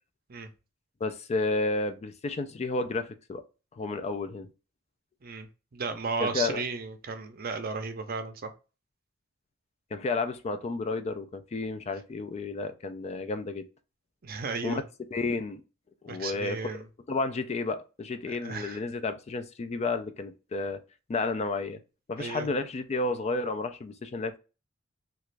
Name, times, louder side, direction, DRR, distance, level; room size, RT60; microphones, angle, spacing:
voice 1, 1.0-3.4 3.7-4.5 6.2-6.6 9.9-13.7 14.6-14.8 15.1-15.6 16.0-20.8 21.1-21.8 22.1-24.4, left 3 dB, 30° left, 0.3 m, -31 dB
voice 2, 5.7-8.5 14.2-14.8 16.1-16.9 18.4-18.8 22.2-22.5, right 4 dB, 45° right, 0.6 m, -34 dB
2.9 x 2.4 x 3.2 m
head